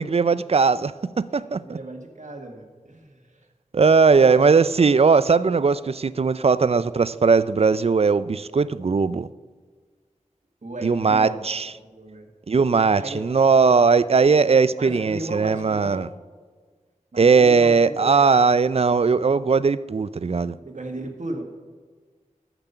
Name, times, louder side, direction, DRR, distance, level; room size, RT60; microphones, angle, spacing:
voice 1, 0.0-1.8 3.7-9.3 10.8-11.7 12.5-16.1 17.2-20.6, right 5 dB, 50° right, 17 dB, 0.4 m, -19 dB
voice 2, 1.6-3.5 4.1-5.0 10.6-11.4 11.8-12.3 13.0-13.2 14.8-16.1 17.1-18.5 20.6-21.4, right 1 dB, 65° right, 3 dB, 1.7 m, -36 dB
13.5 x 6.1 x 5.6 m, 1.5 s
wide cardioid pair, 45°, 14 cm